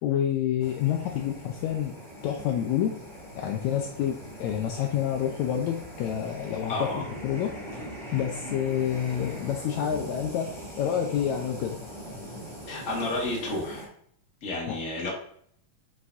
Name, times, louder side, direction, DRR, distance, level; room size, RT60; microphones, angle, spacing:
voice 1, 0.0-1.9 2.2-3.0 3.4-6.9 7.2-11.8 14.7-14.8, left 9 dB, 85° left, 2 dB, 1.7 m, -28 dB
sound 1, 0.6-13.9, equal, ahead, 2.2 m, -41 dB
voice 2, 6.7-7.0 12.7-13.9 14.4-15.1, left 2 dB, 35° left, -3 dB, 1.4 m, -31 dB
8.3 x 4.8 x 2.6 m, 0.63 s
omnidirectional pair, 3.8 m